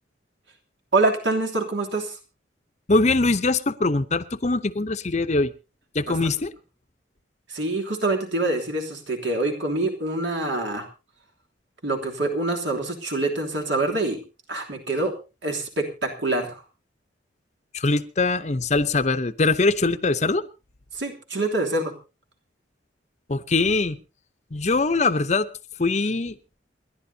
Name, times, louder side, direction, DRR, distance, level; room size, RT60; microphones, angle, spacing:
voice 1, 0.9-2.2 6.1-6.3 7.5-10.9 11.8-14.2 14.5-15.1 15.4-16.6 20.9-21.9, right 2 dB, 75° right, 2 dB, 3.0 m, -25 dB
voice 2, 2.9-5.5 5.9-6.5 17.7-20.4 23.3-24.0 24.5-25.5 25.8-26.3, left 3 dB, 40° left, 12 dB, 0.7 m, -22 dB
28.5 x 11.0 x 2.8 m, 0.30 s
head